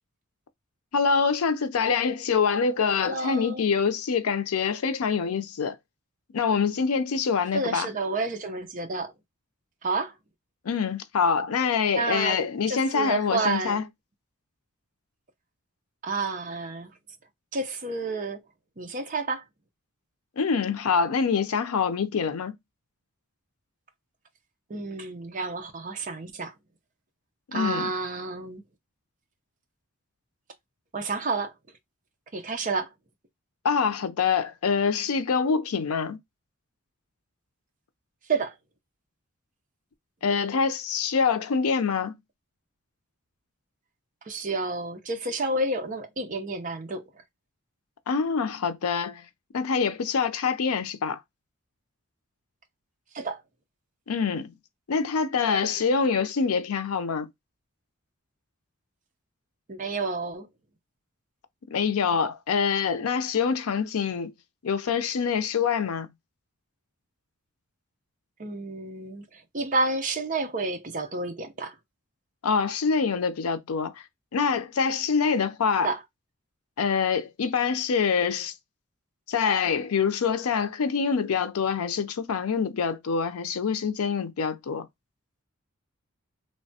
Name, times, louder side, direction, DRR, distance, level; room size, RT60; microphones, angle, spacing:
voice 1, 0.9-5.8 6.3-7.9 10.6-13.8 20.4-22.6 27.5-27.9 33.6-36.2 40.2-42.1 48.1-49.2 49.5-51.2 54.1-54.5 54.9-57.3 61.7-64.3 64.6-66.1 72.4-74.0 74.3-75.9 76.8-78.5 79.3-84.9, left 5 dB, 85° left, 0.5 m, -25 dB
voice 2, 3.0-3.6 7.5-9.1 9.8-10.1 11.9-12.4 12.7-13.8 16.0-16.9 17.5-18.4 18.8-19.4 24.7-26.5 27.5-28.6 30.9-31.5 32.3-32.9 38.3-38.5 44.3-47.0 53.1-53.4 59.7-60.5 68.4-71.7 75.8-76.0, right 3 dB, 35° right, 0.6 m, -30 dB
3.2 x 2.2 x 2.7 m
head